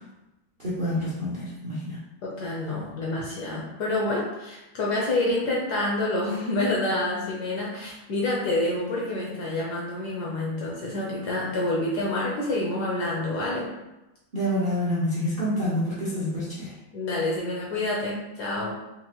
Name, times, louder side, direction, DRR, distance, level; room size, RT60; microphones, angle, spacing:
voice 1, 0.6-2.0 14.3-16.8, equal, 45° right, -8 dB, 0.6 m, -27 dB
voice 2, 2.2-13.7 16.1-16.2 16.9-18.7, left 2 dB, 65° left, -4 dB, 1.0 m, -28 dB
4.5 x 2.5 x 2.9 m, 0.98 s
omnidirectional pair, 2.2 m